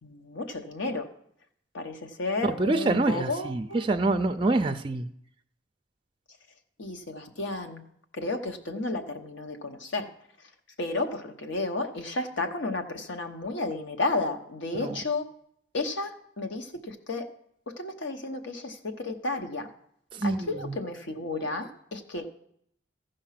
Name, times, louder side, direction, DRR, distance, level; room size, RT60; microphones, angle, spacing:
voice 1, 0.0-1.1 1.7-3.9 6.8-7.8 8.1-10.1 10.8-15.3 15.7-17.3 17.7-19.7 20.2-22.3, left 2 dB, 85° left, 5 dB, 1.0 m, -32 dB
voice 2, 2.6-5.1 14.7-14.9 20.1-20.8, right 2 dB, 25° right, 6 dB, 0.4 m, -26 dB
14.5 x 5.3 x 5.8 m, 0.71 s
head